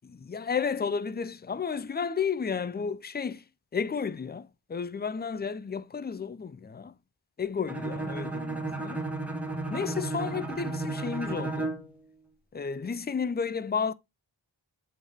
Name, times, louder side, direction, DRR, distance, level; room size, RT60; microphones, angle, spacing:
voice 1, 0.0-3.4 3.7-6.9 7.4-9.0 9.7-11.7 12.5-13.9, left 6 dB, 25° left, 0.4 m, -32 dB
Bowed string instrument, 7.7-11.9, right 2 dB, 5° right, 1.1 m, -33 dB
8.0 x 3.5 x 3.5 m
wide cardioid pair, 65°, 45 cm